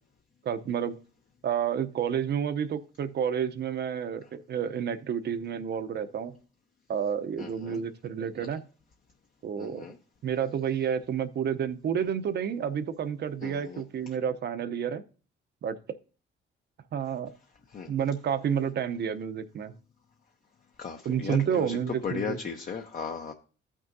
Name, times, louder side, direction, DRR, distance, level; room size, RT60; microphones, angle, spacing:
voice 1, 0.4-1.0 1.4-6.3 6.9-8.6 9.4-9.8 10.2-15.0 15.6-15.8 16.9-17.3 17.9-19.7 21.0-22.4, right 8 dB, 60° right, 0.8 m, -30 dB
voice 2, 7.4-7.8 9.6-9.9 13.4-13.8 17.7-17.9 20.8-21.8 22.0-23.3, left 6 dB, 45° left, 0.9 m, -36 dB
14.0 x 6.1 x 2.7 m
cardioid pair, 90°, 20 cm